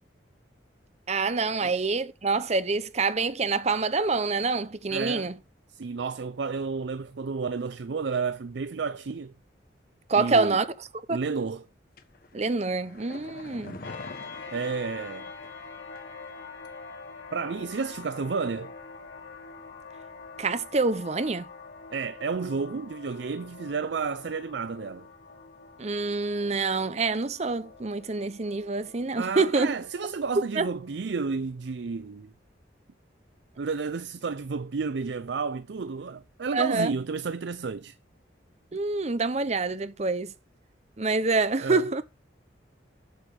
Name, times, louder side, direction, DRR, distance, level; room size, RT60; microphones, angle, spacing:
voice 1, 1.1-5.3 10.1-10.7 11.1-11.2 12.3-13.8 20.4-21.4 25.8-29.7 30.6-30.7 36.5-36.9 38.7-40.3 41.0-42.0, right 3 dB, 35° right, 0.7 m, -26 dB
voice 2, 4.9-5.3 5.7-9.3 10.1-10.6 11.1-11.7 14.5-15.3 17.3-18.7 21.9-25.1 29.2-32.3 33.6-37.9 41.6-41.8, right 5 dB, 65° right, 0.5 m, -31 dB
sound 1, 12.0-15.7 16.0-16.1, left 2 dB, 50° left, 1.2 m, -45 dB
sound 2, 13.8-31.1, left 4 dB, 80° left, 2.4 m, -45 dB
8.0 x 7.1 x 5.5 m
head